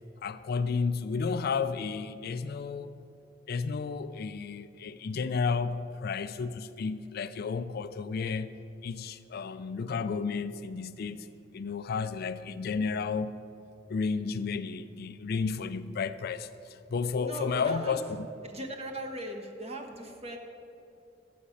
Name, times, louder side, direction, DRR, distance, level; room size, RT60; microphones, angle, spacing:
voice 1, 0.2-2.9 3.5-8.5 8.8-11.3 11.5-13.3 13.9-18.0, left 5 dB, 55° left, 0.4 m, -32 dB
voice 2, 17.2-18.0 18.5-20.4, right 1 dB, 35° right, 1.2 m, -38 dB
13.0 x 5.1 x 8.4 m
head